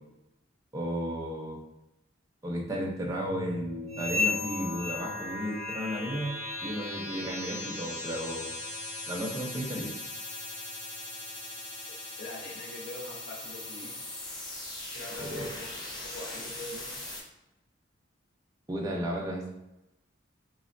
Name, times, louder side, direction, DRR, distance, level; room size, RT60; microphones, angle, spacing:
voice 1, 0.7-1.6 2.4-8.5 9.1-9.9 15.2-15.5 18.7-19.5, equal, 20° right, -1 dB, 0.4 m, -34 dB
sound 1, 3.2-17.2, left 1 dB, 20° left, 0.6 m, -39 dB
sound 2, 3.9-6.1 6.4-6.8 7.2-7.5 8.1-8.2 8.9-9.0 9.7-9.8, left 4 dB, 90° right, 0.4 m, -34 dB
voice 2, 12.2-14.0 14.9-15.7 16.0-16.9, left 2 dB, 70° left, -1 dB, 0.6 m, -42 dB
3.3 x 2.1 x 2.5 m, 0.93 s
head